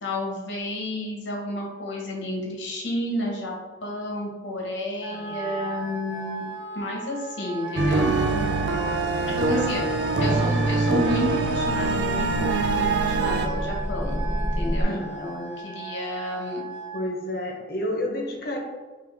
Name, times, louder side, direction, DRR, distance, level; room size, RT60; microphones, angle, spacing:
voice 1, 0.0-3.5 3.8-6.5 6.7-8.1 9.3-9.8 10.2-14.2 14.6-16.6, left 1 dB, 80° left, -1 dB, 1.1 m, -31 dB
Wind instrument woodwind instrument, 5.0-17.0, right 3 dB, 25° right, 1.4 m, -36 dB
voice 2, 5.1-5.9 8.3-8.8 9.5-9.7 10.2-10.4 11.8-11.9 14.8-15.3 16.9-18.6, left 1 dB, 55° left, 1 dB, 0.8 m, -32 dB
sound 1, 7.8-13.5, right 3 dB, 70° right, 0.4 m, -24 dB
sound 2, 8.8-14.8, equal, 15° left, 0.3 m, -33 dB
3.9 x 3.2 x 3.5 m, 1.3 s
head